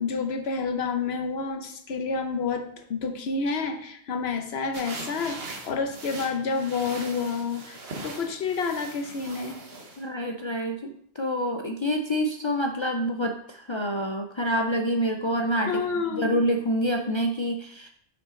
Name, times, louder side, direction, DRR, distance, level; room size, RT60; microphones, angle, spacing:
voice 1, 0.0-5.4 5.6-9.6 15.7-16.4, left 4 dB, 70° left, 5 dB, 1.1 m, -29 dB
sound 1, 4.7-10.0, right 3 dB, 65° right, 1.2 m, -40 dB
voice 2, 10.0-17.9, equal, 50° left, 3 dB, 0.3 m, -27 dB
6.0 x 5.6 x 3.8 m, 0.66 s
omnidirectional pair, 1.1 m